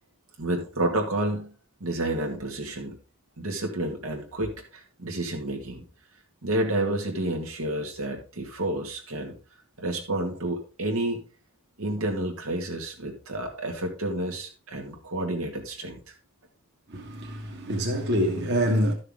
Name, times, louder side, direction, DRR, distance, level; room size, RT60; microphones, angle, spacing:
voice 1, 0.4-1.5 1.8-3.0 3.4-5.8 6.4-9.4 9.8-11.2 11.8-16.1, right 1 dB, 85° right, 2.1 m, -30 dB
voice 2, 16.9-18.9, equal, 55° right, 1.8 m, -26 dB
12.5 x 6.5 x 3.7 m
head